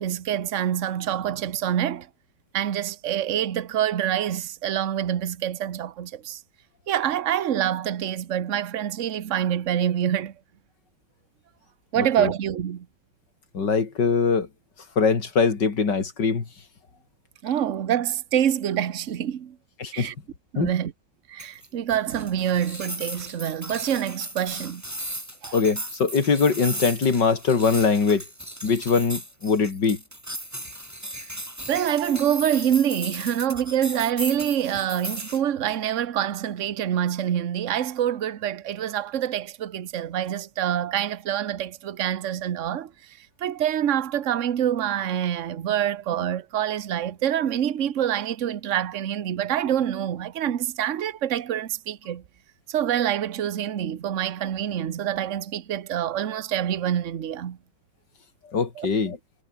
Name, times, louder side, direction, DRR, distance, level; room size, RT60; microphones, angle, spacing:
voice 1, 0.0-2.1 2.5-6.4 6.9-10.3 11.9-12.9 17.4-19.6 19.9-20.1 20.5-20.9 21.3-24.8 25.4-25.6 31.7-52.2 52.7-57.6 58.8-58.9, right 10 dB, 50° right, 1.2 m, -26 dB
voice 2, 12.0-12.3 13.5-14.5 15.0-16.5 19.8-20.1 20.6-20.7 25.5-28.2 28.6-30.0 58.5-59.2, left 5 dB, 65° left, 3.5 m, -22 dB
sound 1, 21.4-35.4, right 1 dB, 10° right, 5.1 m, -36 dB
omnidirectional pair, 2.1 m